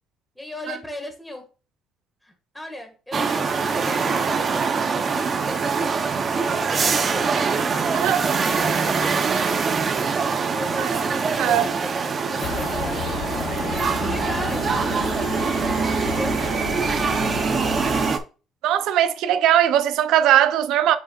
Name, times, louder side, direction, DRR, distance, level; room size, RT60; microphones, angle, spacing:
voice 1, 0.4-1.4 2.2-7.4 7.7-9.2 10.5-14.7 16.0-16.4, left 1 dB, 5° left, 1.9 m, -37 dB
sound 1, 3.1-18.2, right 5 dB, 40° right, 0.9 m, -23 dB
voice 2, 11.3-11.7 18.6-21.0, right 11 dB, 75° right, 0.6 m, -19 dB
sound 2, 12.4-18.1, left 9 dB, 85° left, 0.8 m, -32 dB
8.0 x 5.0 x 2.5 m
cardioid pair, 100°, 0 cm